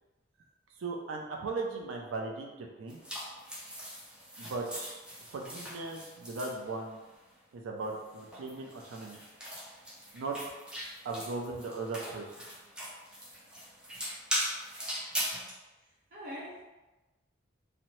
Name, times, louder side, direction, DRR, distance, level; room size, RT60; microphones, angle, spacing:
voice 1, 0.8-3.0 4.4-5.0 5.3-7.0 7.5-9.2 10.1-10.4 11.0-12.3, right 3 dB, 85° right, 1 dB, 0.4 m, -37 dB
The Sound of Baking, 2.9-7.2 7.9-15.5, equal, 5° right, 0.4 m, -40 dB
voice 2, 15.5-16.6, equal, 45° right, -8 dB, 0.7 m, -45 dB
2.7 x 2.0 x 2.9 m, 1.1 s
head